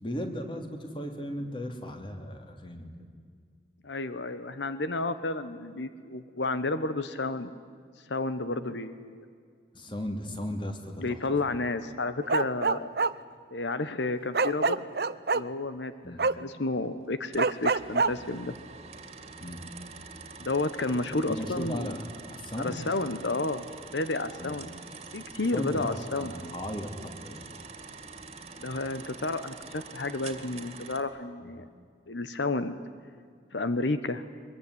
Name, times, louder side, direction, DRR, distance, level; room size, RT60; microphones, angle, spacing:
voice 1, 0.0-3.1 9.7-11.2 11.5-11.6 16.0-16.2 19.4-19.6 21.3-22.9 24.4-24.6 25.5-26.9 27.2-27.4 31.4-31.5, equal, 25° left, 5 dB, 2.8 m, -36 dB
voice 2, 3.8-7.5 8.0-9.2 11.0-12.9 13.5-14.8 15.3-18.5 20.4-21.9 22.6-24.7 25.1-26.3 28.6-31.7 32.1-32.8 33.5-34.2, left 2 dB, 85° left, 11 dB, 1.1 m, -31 dB
Bark, 12.3-13.1 14.3-15.4 16.2-16.3 17.4-18.1, right 4 dB, 60° right, 0.7 m, -25 dB
sound 1, 17.3-31.0, right 4 dB, 35° right, 2.3 m, -46 dB
24.0 x 22.0 x 9.9 m, 2.1 s
head